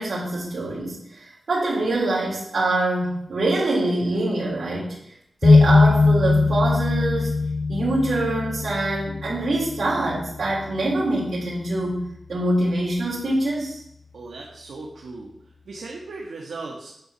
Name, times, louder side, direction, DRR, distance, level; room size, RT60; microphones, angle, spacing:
voice 1, 0.0-5.0 5.4-7.3 7.7-13.8, right 2 dB, 65° right, -8 dB, 3.7 m, -24 dB
sound 1, 5.4-11.2, left 3 dB, 40° left, 0.3 m, -20 dB
voice 2, 14.1-15.3 15.7-16.9, right 3 dB, 85° right, -2 dB, 1.9 m, -37 dB
10.5 x 6.5 x 7.0 m, 0.75 s
wide cardioid pair, 140°, 0 cm